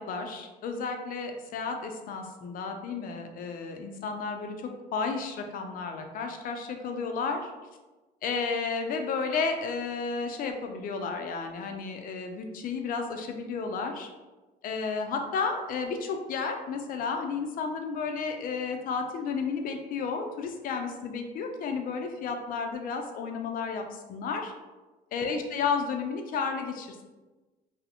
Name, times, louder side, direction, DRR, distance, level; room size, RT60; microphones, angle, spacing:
voice 1, 0.0-4.5 4.9-7.5 8.2-14.1 14.6-24.5 25.1-27.0, left 5 dB, 55° left, 4 dB, 0.4 m, -32 dB
2.5 x 2.0 x 2.7 m, 1.2 s
cardioid pair, 110°, 17 cm